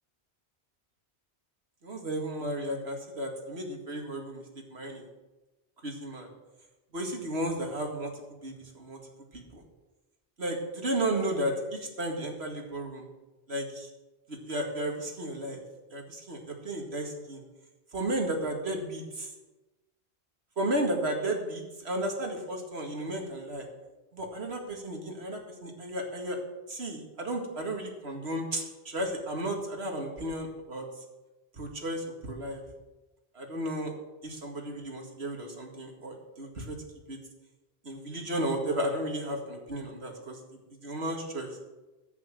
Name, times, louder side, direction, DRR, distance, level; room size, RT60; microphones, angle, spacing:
voice 1, 1.8-4.4 4.7-5.0 5.8-6.3 6.9-8.1 8.4-9.0 9.3-9.6 10.4-13.1 13.5-13.9 14.3-15.6 15.9-17.4 17.9-19.3 20.6-23.7 24.1-26.4 26.7-30.8 31.6-32.6 33.4-33.9 34.2-36.8 37.1-37.2 37.9-40.4 40.8-41.5, right 1 dB, 80° right, 2 dB, 2.4 m, -33 dB
11.0 x 8.6 x 7.6 m, 1.1 s
omnidirectional pair, 1.1 m